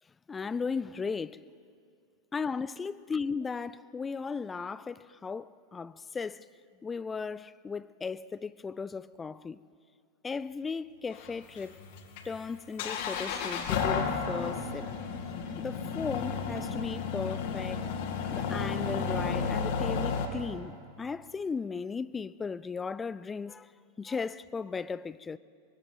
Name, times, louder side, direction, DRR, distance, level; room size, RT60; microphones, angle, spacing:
voice 1, 0.3-1.4 2.3-6.5 6.8-9.6 10.2-11.8 12.2-14.9 15.6-17.9 18.3-23.7 24.0-25.4, left 5 dB, 15° left, 0.4 m, -36 dB
sound 1, 11.1-20.3, left 5 dB, 50° left, 2.4 m, -32 dB
24.0 x 22.5 x 5.9 m
figure-of-eight pair, 90°, 0 cm